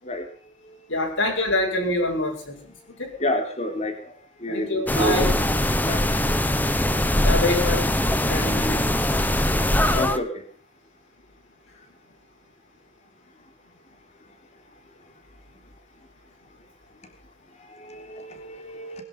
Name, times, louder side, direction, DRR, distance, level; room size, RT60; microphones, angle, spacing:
voice 1, 0.0-1.9 2.7-6.1 9.9-10.5 11.7-11.9 13.4-13.5 14.7-15.1 17.0-17.1 17.5-19.0, left 1 dB, 35° left, 4 dB, 3.5 m, -32 dB
voice 2, 0.9-2.6 3.0-3.1 4.5-5.3 7.2-7.8 8.3-8.8, left 1 dB, 75° left, -4 dB, 6.0 m, -25 dB
sound 1, 4.9-10.2, left 1 dB, 10° left, 1.1 m, -22 dB
21.5 x 11.0 x 5.7 m, 0.39 s
head